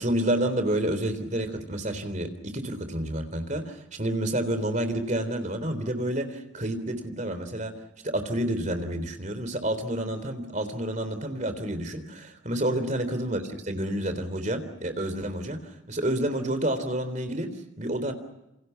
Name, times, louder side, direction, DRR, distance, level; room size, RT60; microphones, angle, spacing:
voice 1, 0.0-7.7 8.0-17.5 17.8-18.1, right 1 dB, 35° right, 10 dB, 3.6 m, -29 dB
28.5 x 28.0 x 5.8 m, 0.93 s
head